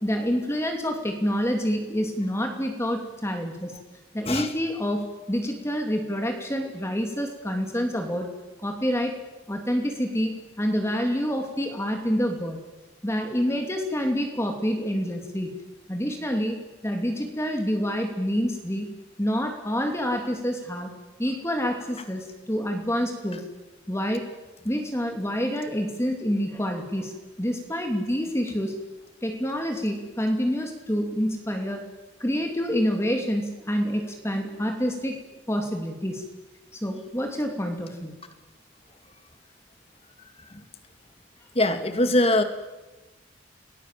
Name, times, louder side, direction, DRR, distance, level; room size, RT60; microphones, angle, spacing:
voice 1, 0.0-3.7 4.1-8.3 8.6-9.1 9.5-12.6 13.0-15.5 15.9-16.6 16.8-18.9 19.2-20.9 21.2-23.4 23.9-24.2 24.6-28.7 29.2-31.8 32.2-35.2 35.5-36.2 36.8-38.1, equal, 15° left, 3 dB, 3.0 m, -27 dB
voice 2, 41.5-42.4, left 1 dB, 30° left, 7 dB, 2.3 m, -22 dB
30.0 x 20.0 x 7.7 m, 1.1 s
head